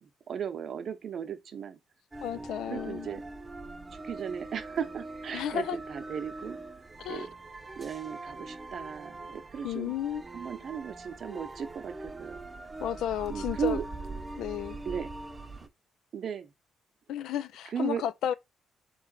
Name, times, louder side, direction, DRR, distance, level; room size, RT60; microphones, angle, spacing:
voice 1, 0.0-1.8 2.3-3.3 3.9-6.6 7.1-7.3 7.8-9.9 10.3-12.4 13.3-13.8 14.9-15.1 16.1-16.5 17.7-18.0, right 8 dB, 55° right, 0.8 m, -36 dB
sound 1, 2.1-15.7, right 2 dB, 20° right, 0.7 m, -42 dB
voice 2, 2.2-3.1 5.3-5.8 7.0-7.3 9.6-10.2 12.8-13.8 14.4-14.8 17.1-18.3, left 10 dB, 80° left, 0.3 m, -32 dB
3.7 x 3.1 x 3.9 m
cardioid pair, 90°, 0 cm